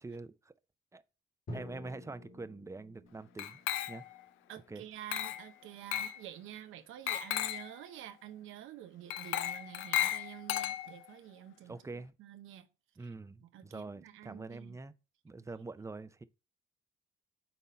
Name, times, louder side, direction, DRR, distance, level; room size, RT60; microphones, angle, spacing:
voice 1, 0.0-0.5 0.9-1.0 1.5-3.6 3.9-4.0 4.7-4.8 11.7-12.1 13.0-14.9 15.2-16.2, right 3 dB, 15° right, 0.4 m, -45 dB
Drum, 1.5-5.3, equal, 45° left, 1.9 m, -50 dB
Glass, 3.4-4.2 5.1-5.5 5.9-6.2 7.1-7.7 9.1-11.1, left 12 dB, 80° left, 0.4 m, -35 dB
voice 2, 4.5-12.7 13.0-13.1 13.4-14.8, right 12 dB, 85° right, 0.8 m, -49 dB
5.8 x 4.0 x 4.1 m
cardioid pair, 90°, 20 cm